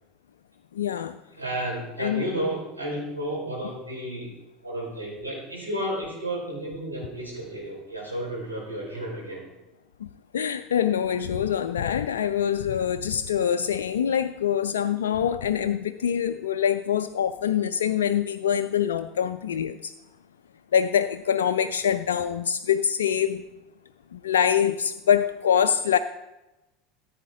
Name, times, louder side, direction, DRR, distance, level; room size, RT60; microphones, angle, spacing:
voice 1, 0.7-1.2 2.0-2.2 10.0-10.1 10.3-19.9 20.7-23.4 24.1-26.0, left 8 dB, 70° left, 8 dB, 0.3 m, -24 dB
voice 2, 1.3-4.3 4.6-9.4, right 1 dB, 90° right, -6 dB, 4.8 m, -32 dB
15.0 x 8.4 x 3.7 m, 1.0 s
figure-of-eight pair, 75°, 0 cm